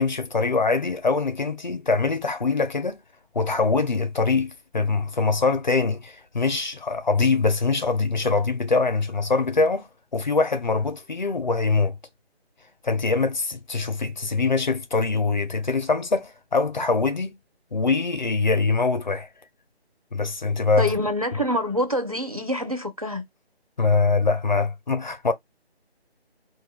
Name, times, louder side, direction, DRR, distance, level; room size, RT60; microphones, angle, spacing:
voice 1, 0.0-3.0 3.3-12.0 12.8-17.4 17.7-19.3 20.1-20.9 23.8-25.3, left 4 dB, 45° left, 0.5 m, -23 dB
voice 2, 20.8-23.2, left 1 dB, 35° right, 0.4 m, -26 dB
2.2 x 2.2 x 3.4 m
figure-of-eight pair, 160°, 32 cm